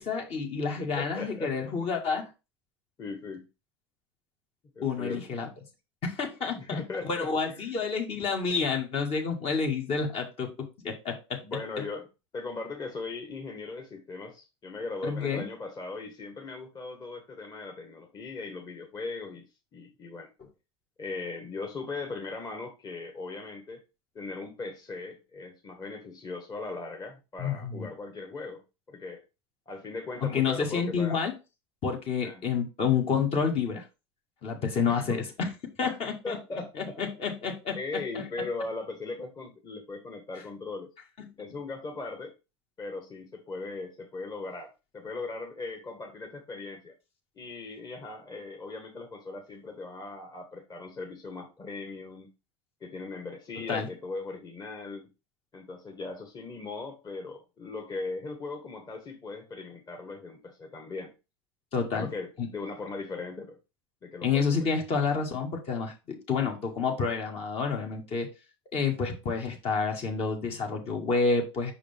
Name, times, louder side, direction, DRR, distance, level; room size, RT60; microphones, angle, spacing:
voice 1, 0.0-2.3 4.8-5.5 6.0-11.4 15.0-15.4 27.4-27.9 30.3-31.3 31.8-33.8 34.4-35.5 35.8-36.4 36.8-38.3 53.7-53.9 61.7-62.1 62.4-62.5 64.2-68.3 68.7-71.7, left 5 dB, 45° left, 1.9 m, -29 dB
voice 2, 0.9-1.5 3.0-3.5 4.7-5.3 6.5-7.8 11.4-12.1 12.3-19.4 19.7-20.3 21.0-23.8 24.1-28.6 28.9-29.2 29.7-31.2 32.2-32.4 34.8-35.2 35.8-36.0 36.2-36.9 37.7-40.9 41.4-42.3 42.8-46.9 47.4-52.3 52.8-55.1 55.5-61.1 61.9-63.5 64.0-64.4, left 3 dB, 30° left, 1.6 m, -38 dB
5.7 x 4.9 x 3.5 m
hypercardioid pair, 80°, 14 cm